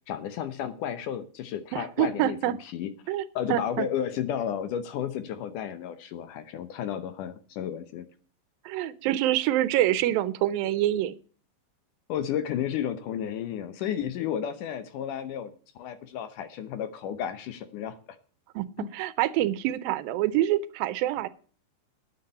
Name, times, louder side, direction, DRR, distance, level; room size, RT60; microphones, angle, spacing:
voice 1, 0.0-8.1 12.1-18.0 18.8-18.9, left 9 dB, 70° left, 12 dB, 2.2 m, -33 dB
voice 2, 1.7-2.5 3.1-3.2 3.5-3.9 8.7-11.2 18.6-18.7 18.9-21.3, right 13 dB, 80° right, 15 dB, 2.4 m, -26 dB
9.9 x 8.6 x 6.5 m, 0.42 s
omnidirectional pair, 4.2 m